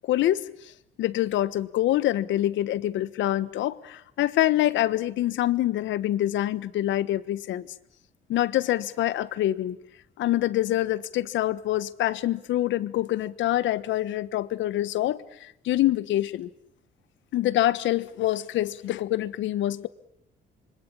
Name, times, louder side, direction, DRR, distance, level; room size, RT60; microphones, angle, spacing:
voice 1, 0.1-0.4 1.0-7.7 8.3-9.8 10.2-16.5 17.3-19.9, left 14 dB, 85° left, 17 dB, 1.3 m, -25 dB
27.0 x 24.5 x 8.8 m, 0.75 s
cardioid pair, 130°, 19 cm